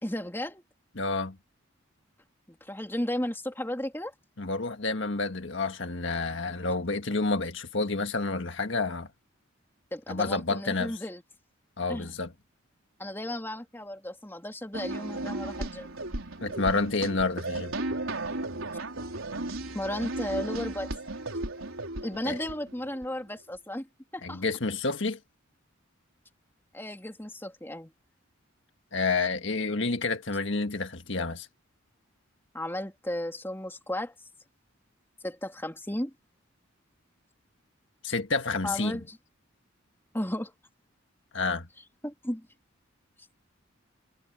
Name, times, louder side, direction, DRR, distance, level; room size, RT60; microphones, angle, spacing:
voice 1, 0.0-0.6 2.5-4.1 9.9-11.2 11.9-12.1 13.0-16.0 19.7-20.9 22.0-23.9 24.1-24.4 26.7-27.9 32.5-34.1 35.2-36.1 38.6-39.2 40.1-40.5 42.0-42.5, left 1 dB, 10° left, 2.8 m, -34 dB
voice 2, 1.0-1.3 4.4-9.1 10.1-11.0 11.8-12.3 16.4-17.7 22.2-22.4 24.2-25.2 28.9-31.5 38.0-39.0 41.3-41.7, left 3 dB, 65° left, 1.7 m, -29 dB
sound 1, 14.7-23.0, right 2 dB, 85° right, 4.4 m, -35 dB
head